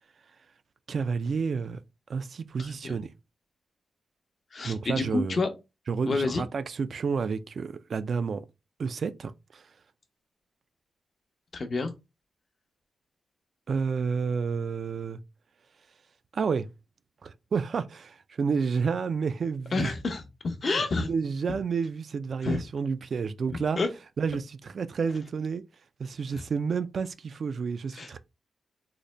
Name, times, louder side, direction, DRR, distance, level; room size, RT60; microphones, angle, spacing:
voice 1, 0.9-1.8 2.1-3.1 4.6-5.4 5.9-8.5 8.8-9.7 13.7-15.2 16.3-16.7 17.2-19.9 20.6-23.8 24.2-25.6 26.0-28.2, right 5 dB, 60° right, 0.3 m, -30 dB
voice 2, 4.5-5.5 6.0-6.4 11.5-11.9 19.7-21.1 22.4-22.6 23.8-23.9 28.0-28.1, left 3 dB, 50° left, 0.7 m, -28 dB
4.0 x 2.1 x 3.2 m
cardioid pair, 75°, 0 cm